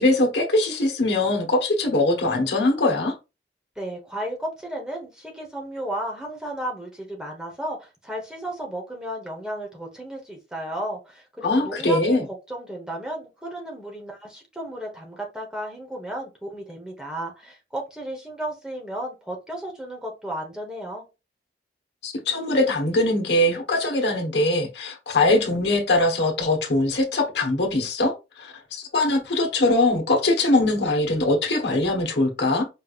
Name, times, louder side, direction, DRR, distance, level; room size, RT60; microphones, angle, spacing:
voice 1, 0.0-3.1 11.4-12.2 22.0-32.6, left 2 dB, 75° left, 1.2 m, -22 dB
voice 2, 3.8-12.2 12.5-21.0, right 1 dB, 5° right, 1.1 m, -33 dB
5.2 x 3.3 x 2.4 m
head